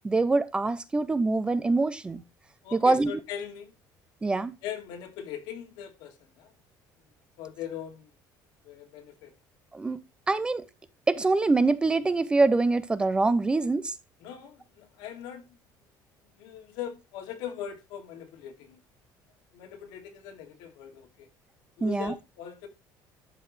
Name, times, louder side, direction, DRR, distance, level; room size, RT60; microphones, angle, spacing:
voice 1, 0.0-2.2 2.7-3.1 4.2-4.5 9.7-10.6 11.1-13.9 21.8-22.1, right 3 dB, 10° right, 0.5 m, -24 dB
voice 2, 2.6-3.7 4.6-6.5 7.4-8.1 8.6-9.3 14.2-15.4 16.4-18.8 19.5-21.3 21.8-22.7, left 9 dB, 90° left, 2.6 m, -40 dB
12.0 x 6.9 x 3.3 m
cardioid pair, 170°, 8 cm